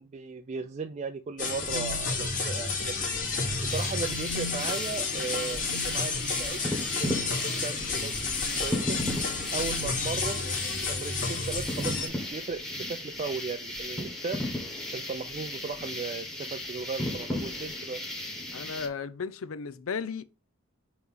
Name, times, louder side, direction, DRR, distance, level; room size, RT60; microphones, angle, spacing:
voice 1, 0.0-3.2 3.6-9.0 9.5-10.5 10.9-14.4 14.9-18.0, right 4 dB, 30° right, 0.3 m, -37 dB
sound 1, 1.4-12.1, left 4 dB, 40° left, 1.8 m, -31 dB
sound 2, 3.7-18.9, left 1 dB, ahead, 1.3 m, -35 dB
voice 2, 18.5-20.2, left 5 dB, 65° left, 0.5 m, -35 dB
5.7 x 3.1 x 5.5 m
head